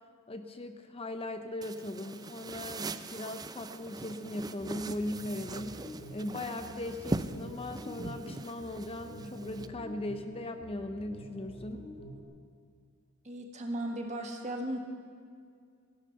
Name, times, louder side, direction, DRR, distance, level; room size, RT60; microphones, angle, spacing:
voice 1, 0.3-5.8 6.1-11.8, left 1 dB, 25° left, 7 dB, 0.7 m, -38 dB
sound 1, 1.6-9.7, right 2 dB, 20° right, 0.4 m, -41 dB
sound 2, 4.2-12.2, equal, 60° left, 2.6 m, -48 dB
voice 2, 13.2-14.8, right 1 dB, 35° right, 2 dB, 1.7 m, -36 dB
16.0 x 10.5 x 6.8 m, 2.2 s
head